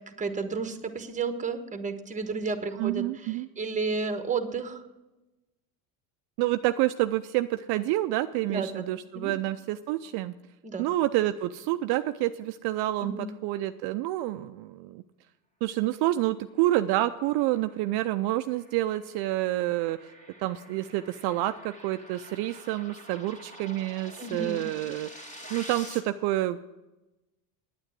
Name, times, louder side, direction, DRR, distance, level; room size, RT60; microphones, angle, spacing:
voice 1, 0.1-4.9 8.4-8.9 9.1-9.3 10.6-10.9 13.0-13.3 24.2-24.7, right 4 dB, 15° right, 8 dB, 1.2 m, -32 dB
voice 2, 2.8-3.5 6.4-10.3 10.8-13.1 13.4-15.0 15.6-20.0 20.4-26.8, right 15 dB, 60° right, 9 dB, 0.6 m, -28 dB
sound 1, 17.1-26.0, equal, 15° left, 2.1 m, -48 dB
9.4 x 9.0 x 7.5 m, 1.0 s
supercardioid pair, 100°, 44 cm